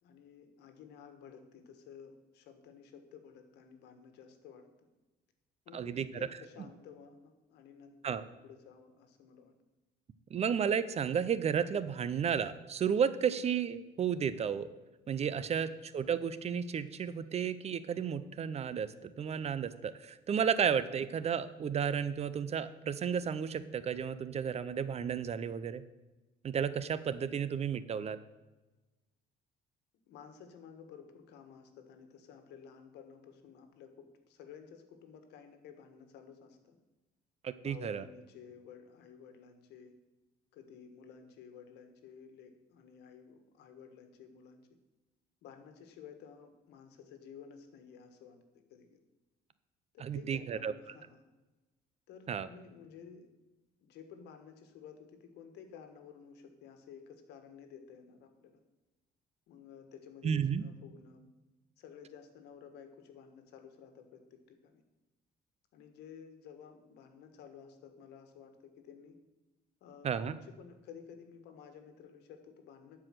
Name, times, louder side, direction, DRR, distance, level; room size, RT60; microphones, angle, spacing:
voice 1, 0.0-4.9 5.6-9.5 30.1-36.8 37.6-39.9 40.5-44.7 45.4-48.4 48.7-49.0 49.9-51.2 52.1-53.3 53.8-58.6 59.5-61.3 61.8-64.8 65.7-69.1 69.8-73.0, left 7 dB, 80° left, 7 dB, 1.5 m, -53 dB
voice 2, 5.7-6.1 8.0-8.2 10.3-14.7 15.1-25.8 26.4-28.2 37.4-38.0 50.0-50.7 52.3-52.5 60.2-60.6 70.0-70.4, right 7 dB, 40° right, 14 dB, 0.6 m, -33 dB
12.0 x 4.9 x 7.6 m, 1.1 s
cardioid pair, 110°, 17 cm